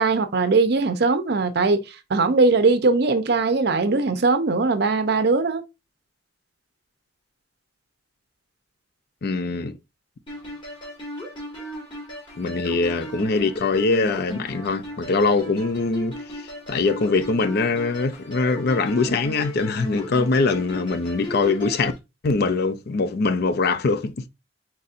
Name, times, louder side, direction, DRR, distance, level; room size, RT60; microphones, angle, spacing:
voice 1, 0.0-1.8 2.1-5.6, right 3 dB, 60° right, 0.6 m, -20 dB
voice 2, 9.2-9.8 12.4-16.4 16.7-21.9 22.2-24.3, left 3 dB, 60° left, 0.5 m, -23 dB
sound 1, 10.3-22.0, equal, 30° left, 2.1 m, -36 dB
4.1 x 4.0 x 2.5 m
head